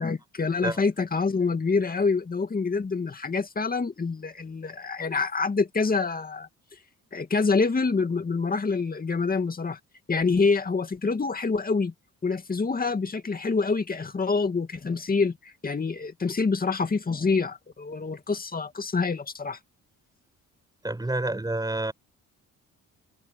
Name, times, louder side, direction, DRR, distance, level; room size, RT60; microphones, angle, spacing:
voice 1, 0.0-6.5 7.1-9.8 10.1-11.9 12.2-19.6, left 4 dB, 30° left, 2.4 m, -26 dB
voice 2, 20.8-21.9, right 2 dB, 15° right, 7.2 m, -28 dB
cardioid pair, 90°, 30 cm